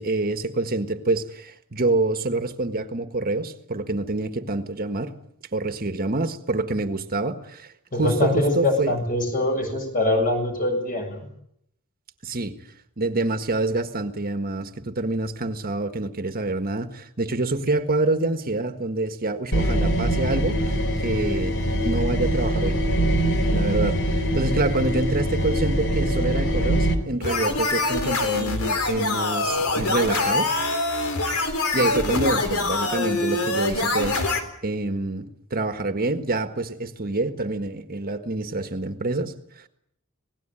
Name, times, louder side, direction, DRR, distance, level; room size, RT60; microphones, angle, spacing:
voice 1, 0.0-5.2 5.5-7.7 8.0-8.9 12.2-12.5 13.0-21.6 21.8-22.8 23.5-30.5 31.4-39.7, right 2 dB, 45° right, 8 dB, 1.6 m, -27 dB
voice 2, 7.9-11.3, left 1 dB, 40° left, 4 dB, 7.5 m, -23 dB
sound 1, 19.5-26.9, right 1 dB, 55° left, 3.6 m, -23 dB
sound 2, 27.2-34.4, left 3 dB, 80° left, 4.0 m, -24 dB
26.5 x 19.0 x 8.9 m, 0.73 s
head